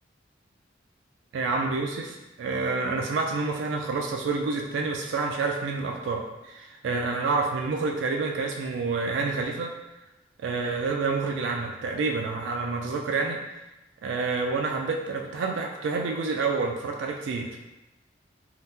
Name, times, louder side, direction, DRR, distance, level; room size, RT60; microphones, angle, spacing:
voice 1, 1.3-9.7 10.4-13.4 14.0-17.6, right 4 dB, 90° right, 2 dB, 0.3 m, -28 dB
2.8 x 2.0 x 3.4 m, 1.0 s
head